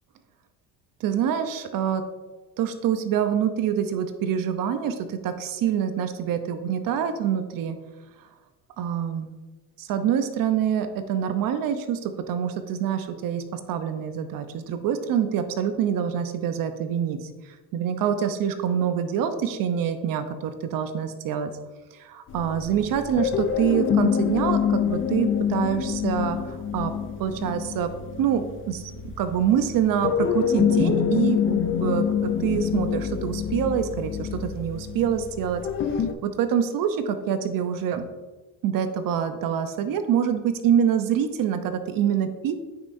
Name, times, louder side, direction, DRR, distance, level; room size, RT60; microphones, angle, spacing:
voice 1, 1.0-2.0 2.6-7.8 8.8-9.3 9.8-17.2 17.7-21.5 22.0-26.9 27.2-27.9 28.2-35.6 36.2-38.1 38.6-42.5, right 8 dB, 55° right, 9 dB, 0.8 m, -26 dB
sound 1, 22.3-36.1, left 8 dB, 35° left, 0.4 m, -26 dB
8.6 x 5.6 x 2.6 m, 1.2 s
supercardioid pair, 100°, 39 cm